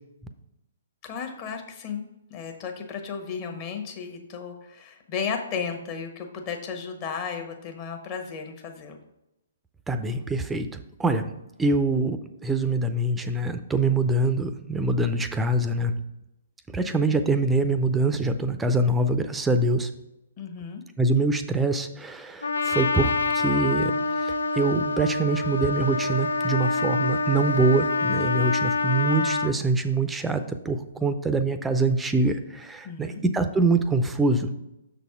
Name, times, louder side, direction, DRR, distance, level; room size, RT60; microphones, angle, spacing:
voice 1, 1.0-9.0 20.4-20.8 32.8-33.2, left 6 dB, 35° left, 3 dB, 1.1 m, -34 dB
voice 2, 9.9-10.7 11.0-11.2 11.6-16.0 16.7-19.9 21.0-23.9 24.2-34.5, right 2 dB, 10° right, 9 dB, 0.5 m, -24 dB
Trumpet, 22.4-29.5, left 3 dB, 75° left, 0.4 m, -26 dB
6.5 x 4.1 x 4.8 m, 0.88 s
figure-of-eight pair, 125°, 0 cm